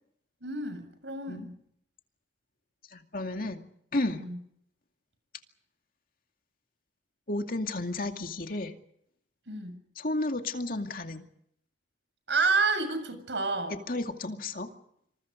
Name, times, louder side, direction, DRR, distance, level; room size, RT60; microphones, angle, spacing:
voice 1, 0.4-1.5 4.2-4.4 9.5-9.8 12.3-13.8, right 4 dB, 85° right, 9 dB, 7.0 m, -29 dB
voice 2, 2.9-3.6 3.9-4.2 7.3-8.7 10.0-11.2 13.9-14.7, left 2 dB, 50° left, 5 dB, 2.4 m, -32 dB
27.5 x 26.5 x 5.3 m, 0.72 s
head